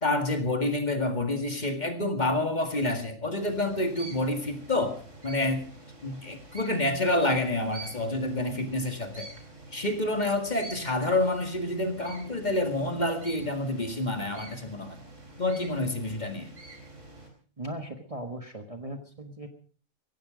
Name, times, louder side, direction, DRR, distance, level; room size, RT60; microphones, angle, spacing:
voice 1, 0.0-5.0 5.2-5.7 6.0-9.3 9.7-15.0 15.4-16.5, left 2 dB, 35° left, 6 dB, 2.1 m, -28 dB
sound 1, 3.4-17.3, right 2 dB, 65° right, 4.0 m, -47 dB
voice 2, 17.6-19.5, right 1 dB, 25° right, 5 dB, 1.5 m, -38 dB
16.5 x 15.5 x 5.1 m, 0.43 s
omnidirectional pair, 1.4 m